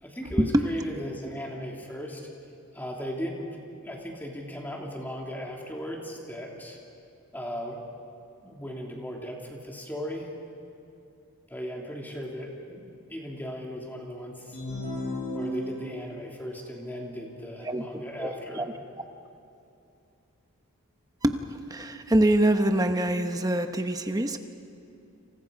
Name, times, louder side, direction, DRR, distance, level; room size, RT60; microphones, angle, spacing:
voice 1, 0.0-2.2 2.7-3.5 3.8-6.8 7.3-7.8 8.4-10.3 11.5-12.8 13.1-14.6 15.3-18.7, equal, 10° left, -1 dB, 3.0 m, -37 dB
sound 1, 14.5-16.1, left 1 dB, 30° left, 5.9 m, -34 dB
voice 2, 18.2-18.7 21.2-21.4 21.7-24.4, right 1 dB, 15° right, 7 dB, 1.0 m, -24 dB
29.5 x 27.5 x 5.3 m, 2.7 s
head